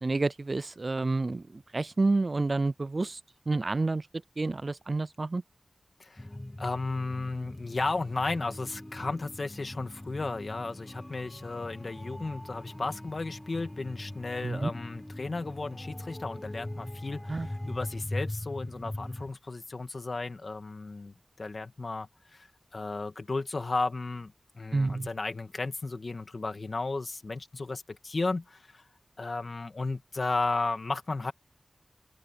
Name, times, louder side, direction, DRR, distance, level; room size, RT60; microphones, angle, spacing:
voice 1, 0.0-3.2 3.5-4.0 4.4-5.4 14.4-14.7 17.3-17.5 24.7-25.1, right 3 dB, 45° right, 0.3 m, -29 dB
sound 1, 6.2-19.3, left 1 dB, 20° left, 0.6 m, -41 dB
voice 2, 6.6-22.5 22.7-28.8 29.2-31.3, left 3 dB, 55° left, 2.0 m, -34 dB
sound 2, 7.6-18.0, equal, 5° left, 4.4 m, -51 dB
open air
wide cardioid pair, 75°, 0 cm